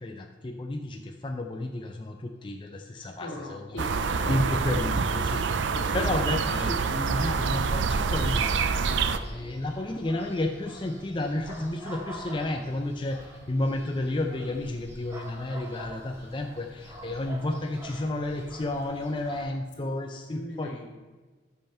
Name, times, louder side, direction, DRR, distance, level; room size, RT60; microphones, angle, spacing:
voice 1, 0.0-3.6 4.3-5.7 5.9-20.7, left 2 dB, 25° left, 3 dB, 0.5 m, -32 dB
voice 2, 3.2-5.0 5.5-6.4 19.8-19.9 20.3-20.8, left 1 dB, 75° left, 1 dB, 2.0 m, -41 dB
sound 1, 3.8-9.2, right 5 dB, 80° right, 0.5 m, -26 dB
sound 2, 5.1-19.4, right 1 dB, 15° right, 1.9 m, -46 dB
13.5 x 5.6 x 4.4 m, 1.3 s
head